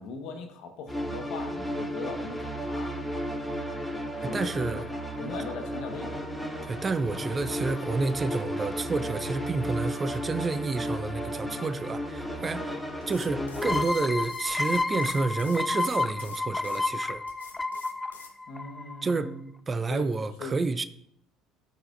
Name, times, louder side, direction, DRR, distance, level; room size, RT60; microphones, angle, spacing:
voice 1, 0.0-2.9 4.2-4.8 5.2-6.2 18.5-19.5 19.9-20.1 20.4-20.5, left 4 dB, 60° left, 1.4 m, -39 dB
sound 1, 0.9-13.8, equal, ahead, 1.8 m, -34 dB
voice 2, 4.2-4.9 6.6-12.8 13.1-17.2 19.0-19.3 19.7-20.8, right 3 dB, 30° right, 0.6 m, -29 dB
sound 2, 13.0-16.8 17.3-18.4, left 6 dB, 90° left, 0.7 m, -49 dB
sound 3, 13.6-19.1, left 3 dB, 15° left, 0.5 m, -30 dB
14.5 x 4.9 x 2.6 m
hypercardioid pair, 60°, 0 cm